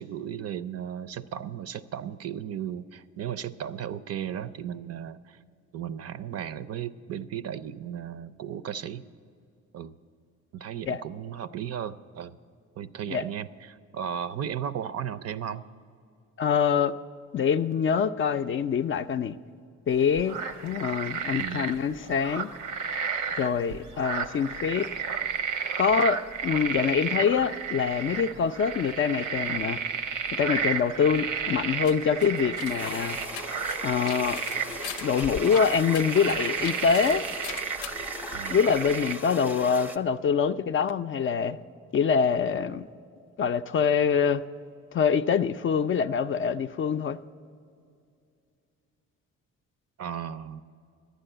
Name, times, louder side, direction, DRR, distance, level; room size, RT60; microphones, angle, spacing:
voice 1, 0.0-5.4 5.7-9.1 9.7-9.9 10.5-12.4 12.8-15.6 21.4-21.7 38.3-38.6 50.0-50.6, right 9 dB, 55° right, 15 dB, 0.5 m, -35 dB
voice 2, 16.4-17.0 17.3-19.4 19.9-22.5 23.4-24.9 25.8-29.8 30.3-33.2 33.8-34.4 35.0-37.2 38.5-41.6 41.9-42.9 43.4-44.4 44.9-47.2, left 6 dB, 45° left, 10 dB, 0.4 m, -25 dB
sound 1, 19.9-39.2, right 6 dB, 85° right, 0.8 m, -32 dB
sound 2, 31.1-38.9, left 8 dB, 80° left, 0.6 m, -42 dB
sound 3, 32.8-40.0, equal, 5° right, 0.5 m, -40 dB
11.5 x 9.1 x 7.8 m, 2.4 s
cardioid pair, 90°, 30 cm